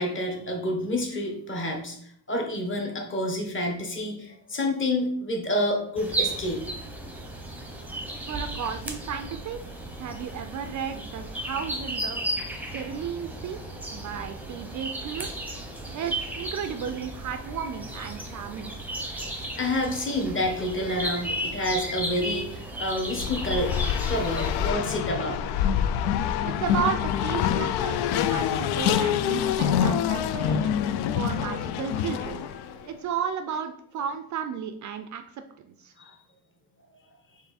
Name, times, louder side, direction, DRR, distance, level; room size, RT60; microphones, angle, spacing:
voice 1, 0.0-2.0 2.3-6.6 19.5-23.7 24.1-25.4 32.6-32.9 36.0-36.1, left 1 dB, 30° left, 2 dB, 1.2 m, -28 dB
sound 1, 6.0-24.7, right 1 dB, 5° right, 0.7 m, -35 dB
voice 2, 8.3-9.6 10.0-12.2 12.7-13.6 13.9-15.3 15.9-18.7 26.4-30.7 31.1-32.4 32.9-35.2 35.6-35.9, right 7 dB, 45° right, 8 dB, 0.4 m, -33 dB
Race car auto racing, 23.1-32.7, left 9 dB, 70° left, 0.5 m, -26 dB
4.5 x 2.7 x 4.2 m, 0.66 s
cardioid pair, 120°, 40 cm